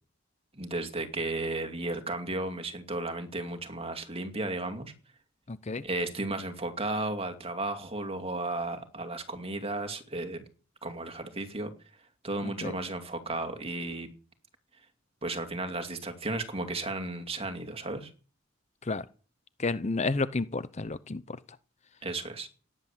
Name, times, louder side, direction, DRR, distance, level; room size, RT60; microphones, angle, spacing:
voice 1, 0.5-4.9 5.8-10.4 10.8-11.7 12.2-14.1 15.2-18.1 22.0-22.5, right 2 dB, 30° right, 2.5 m, -34 dB
voice 2, 5.5-5.8 12.4-12.7 18.8-19.0 19.6-21.4, left 3 dB, 35° left, 0.7 m, -31 dB
17.0 x 10.0 x 7.4 m
head